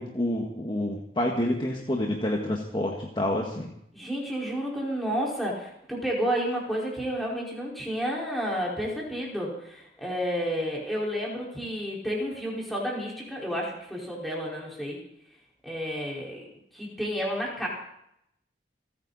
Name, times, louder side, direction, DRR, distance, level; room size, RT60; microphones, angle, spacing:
voice 1, 0.0-3.7, left 1 dB, 25° left, 0 dB, 1.7 m, -28 dB
voice 2, 3.9-15.0 15.6-16.4 16.7-17.7, equal, ahead, -4 dB, 4.9 m, -31 dB
29.0 x 9.8 x 4.2 m, 0.76 s
head